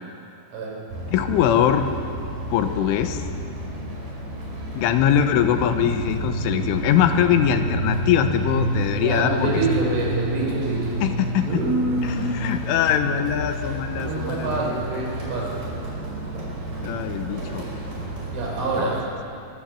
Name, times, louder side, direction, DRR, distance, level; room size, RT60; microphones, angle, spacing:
sound 1, 0.9-19.0, right 1 dB, 45° right, 6.7 m, -31 dB
voice 1, 1.1-1.8 2.5-3.2 4.8-9.5 11.0-11.5 12.0-12.2 12.4-14.8 16.8-17.7 18.8-18.9, left 10 dB, 80° left, 7 dB, 3.7 m, -22 dB
sound 2, 5.9-13.6, equal, 30° right, 3.9 m, -31 dB
voice 2, 9.0-11.0 11.5-12.3 13.9-15.6 18.3-19.0, right 3 dB, 75° right, -2 dB, 7.8 m, -26 dB
24.0 x 22.5 x 7.7 m, 2.5 s
omnidirectional pair, 5.6 m